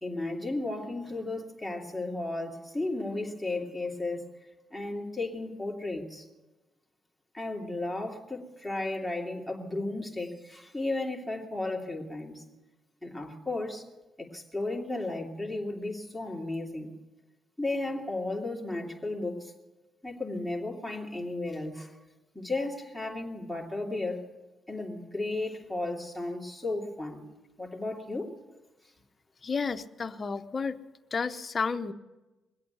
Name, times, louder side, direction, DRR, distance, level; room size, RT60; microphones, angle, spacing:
voice 1, 0.0-4.3 4.7-6.2 7.3-12.4 13.0-13.8 14.2-16.9 17.6-19.5 20.0-21.9 22.3-24.2 24.7-27.3 27.6-28.3, left 2 dB, ahead, -1 dB, 2.7 m, -34 dB
voice 2, 29.4-30.8 31.1-31.9, left 5 dB, 40° left, 10 dB, 0.8 m, -31 dB
21.5 x 8.5 x 7.9 m, 1.1 s
cardioid pair, 90°, 0 cm